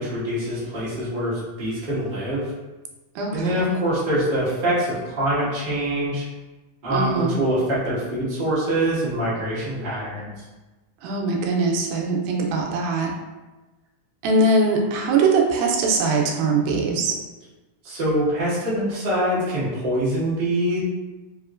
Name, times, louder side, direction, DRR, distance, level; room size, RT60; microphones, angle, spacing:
voice 1, 0.0-2.5 3.3-6.2 6.8-10.4 17.8-20.8, right 1 dB, 65° right, -10 dB, 0.5 m, -24 dB
voice 2, 3.2-3.7 6.9-7.4 11.0-13.1 14.2-17.1, right 3 dB, 80° right, 0 dB, 1.9 m, -21 dB
4.9 x 2.9 x 2.4 m, 1.2 s
omnidirectional pair, 3.7 m